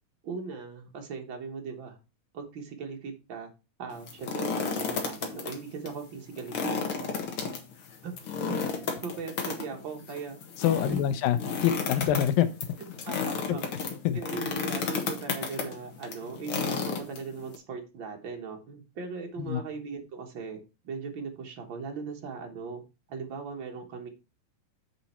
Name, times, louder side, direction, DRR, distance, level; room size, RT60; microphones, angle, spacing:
voice 1, 0.2-2.0 2.3-3.5 3.8-7.2 8.0-8.1 8.4-10.4 10.8-11.0 13.1-13.6 14.1-20.6 20.8-22.8 23.1-24.1, right 5 dB, 75° right, 2 dB, 1.1 m, -39 dB
Rope Cracking, 3.9-5.5 5.8-5.9 6.4-17.6, left 5 dB, 55° left, 1.6 m, -32 dB
voice 2, 10.6-12.5 13.5-13.6 14.0-14.2 19.4-19.6, left 11 dB, 80° left, 12 dB, 2.3 m, -25 dB
7.6 x 5.7 x 4.3 m, 0.30 s
omnidirectional pair, 4.2 m